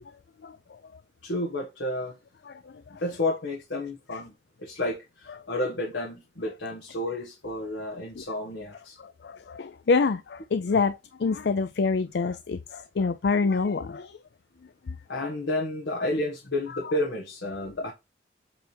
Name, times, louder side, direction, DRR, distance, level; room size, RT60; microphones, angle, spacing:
voice 1, 1.2-2.1 3.0-4.3 4.6-9.0 15.1-17.9, left 1 dB, 90° left, 1.5 m, -31 dB
voice 2, 2.5-2.8 8.2-8.3 9.0-14.2 14.9-15.0, left 4 dB, 65° left, 0.4 m, -27 dB
7.8 x 3.4 x 4.5 m
head